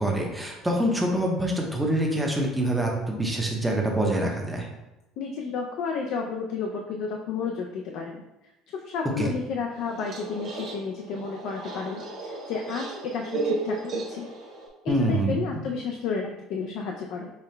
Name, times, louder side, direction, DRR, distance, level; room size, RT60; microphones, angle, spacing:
voice 1, 0.0-4.7 9.2-9.3 14.9-15.6, right 1 dB, 5° right, -1 dB, 0.7 m, -25 dB
voice 2, 5.2-8.2 8.7-14.3 14.8-17.3, left 5 dB, 65° left, 1 dB, 0.4 m, -32 dB
sound 1, 9.7-14.7, right 3 dB, 55° right, 1.4 m, -34 dB
5.6 x 2.2 x 3.2 m, 0.96 s
cardioid pair, 135°, 0 cm